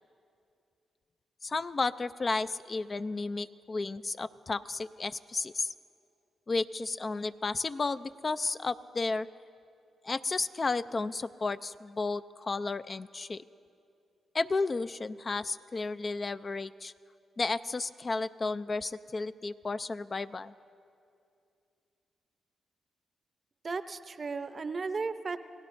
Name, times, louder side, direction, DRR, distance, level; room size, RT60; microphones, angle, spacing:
voice 1, 1.4-5.7 6.5-9.3 10.0-13.4 14.3-16.9 17.4-20.5, left 3 dB, 35° left, 13 dB, 0.3 m, -33 dB
voice 2, 23.6-25.4, right 4 dB, 40° right, 11 dB, 0.6 m, -35 dB
28.5 x 16.5 x 2.5 m, 2.5 s
cardioid pair, 80°, 0 cm